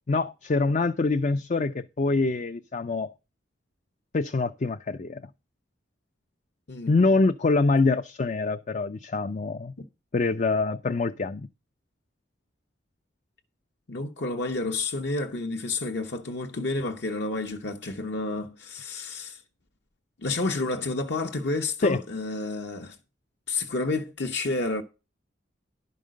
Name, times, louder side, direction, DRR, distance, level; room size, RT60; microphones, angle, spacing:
voice 1, 0.1-3.1 4.1-5.2 6.9-9.7 10.1-11.5 21.8-22.0, left 3 dB, 40° left, 0.5 m, -25 dB
voice 2, 6.7-7.0 13.9-19.4 20.2-23.0 23.5-24.8, left 3 dB, 60° left, 1.0 m, -30 dB
11.0 x 5.3 x 6.4 m
head